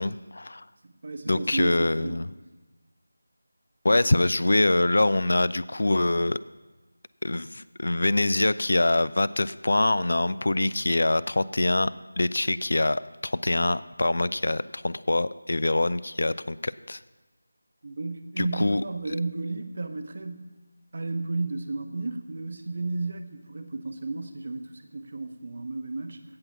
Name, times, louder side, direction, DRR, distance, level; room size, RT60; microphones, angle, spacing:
voice 1, 0.0-0.6 1.3-2.3 3.8-6.4 7.2-11.9 12.2-17.0 18.4-18.8, left 2 dB, 55° left, 18 dB, 0.3 m, -24 dB
voice 2, 0.8-2.2 17.8-20.5 20.9-26.2, right 3 dB, 45° right, 8 dB, 0.9 m, -33 dB
16.5 x 6.1 x 5.6 m, 1.2 s
figure-of-eight pair, 165°, 0 cm